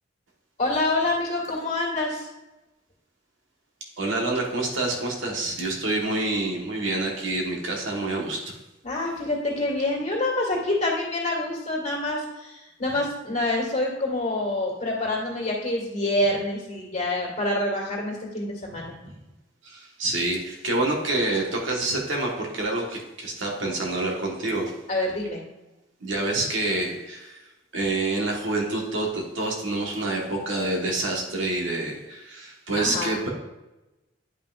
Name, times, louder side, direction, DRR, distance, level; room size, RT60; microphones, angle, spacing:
voice 1, 0.6-2.3 8.8-19.0 24.9-25.4 32.8-33.2, left 2 dB, 40° left, -2 dB, 2.0 m, -27 dB
voice 2, 4.0-8.5 19.0-19.1 19.6-24.7 26.0-27.4 27.7-33.3, right 2 dB, 85° right, 0 dB, 1.5 m, -27 dB
9.8 x 5.5 x 2.5 m, 1.0 s
head